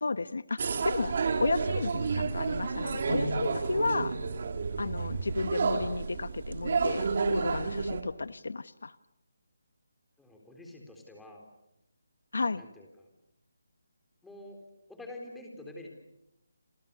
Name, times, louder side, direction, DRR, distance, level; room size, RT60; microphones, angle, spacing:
voice 1, 0.0-1.1 1.4-4.2 4.8-9.0 12.3-12.6, left 3 dB, 75° left, 15 dB, 1.1 m, -33 dB
sound 1, 0.6-8.0, right 4 dB, 45° right, 3.3 m, -31 dB
sound 2, 1.5-6.6, right 3 dB, 85° right, 6.1 m, -47 dB
voice 2, 10.2-11.5 12.6-13.1 14.2-14.6 14.9-15.9, left 1 dB, 5° left, 1 dB, 4.1 m, -47 dB
29.0 x 27.0 x 7.0 m, 0.85 s
hypercardioid pair, 170°, 0 cm